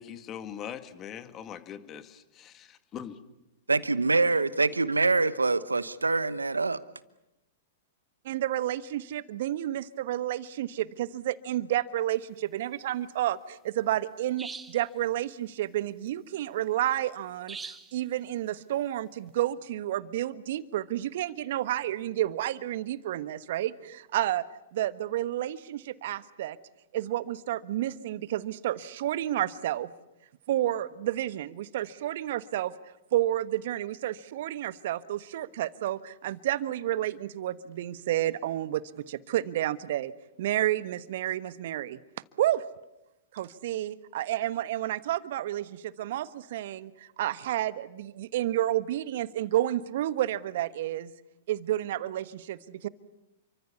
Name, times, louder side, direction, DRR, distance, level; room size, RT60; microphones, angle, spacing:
voice 1, 0.0-3.2, left 9 dB, 30° left, 9 dB, 2.2 m, -41 dB
voice 2, 3.7-6.8, right 3 dB, 90° right, 16 dB, 1.1 m, -25 dB
voice 3, 8.2-24.4 24.7-26.6 26.9-29.9 30.5-32.7 33.1-40.1 40.4-42.0 42.4-42.6 43.3-51.1 51.5-52.9, right 13 dB, 60° right, 15 dB, 1.2 m, -30 dB
sound 1, 14.4-14.9 17.5-18.0, right 5 dB, 15° right, 1.7 m, -41 dB
30.0 x 24.5 x 7.1 m, 0.94 s
hypercardioid pair, 110°, 0 cm